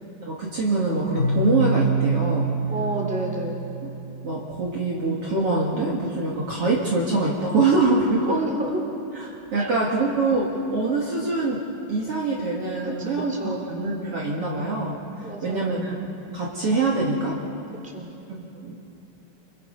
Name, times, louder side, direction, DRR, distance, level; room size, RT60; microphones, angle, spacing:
voice 1, 0.3-2.5 3.8-3.9 4.2-8.4 9.2-11.6 11.9-15.0 15.4-16.0 16.3-17.4 18.6-18.8, right 3 dB, 45° right, -4 dB, 2.8 m, -24 dB
Keyboard (musical), 1.1-4.9, right 3 dB, 25° left, 4.8 m, -27 dB
voice 2, 2.7-3.6 8.3-8.8 9.6-9.7 13.3-13.6 15.2-15.8 17.8-18.1, right 1 dB, ahead, -1 dB, 3.0 m, -30 dB
27.5 x 23.5 x 5.5 m, 2.8 s
omnidirectional pair, 3.9 m